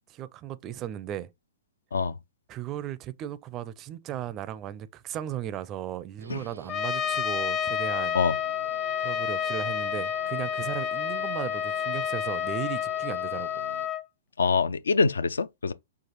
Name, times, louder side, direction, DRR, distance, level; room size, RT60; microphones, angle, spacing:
voice 1, 0.1-1.3 2.5-8.2 9.0-13.5, right 11 dB, 30° right, 0.4 m, -36 dB
Guitar, 6.2-13.9, right 3 dB, 85° right, 0.7 m, -47 dB
Trumpet, 6.7-14.0, left 9 dB, 30° left, 0.6 m, -30 dB
voice 2, 14.4-15.7, left 4 dB, 75° left, 0.3 m, -24 dB
5.9 x 2.4 x 3.0 m
figure-of-eight pair, 115°, 0 cm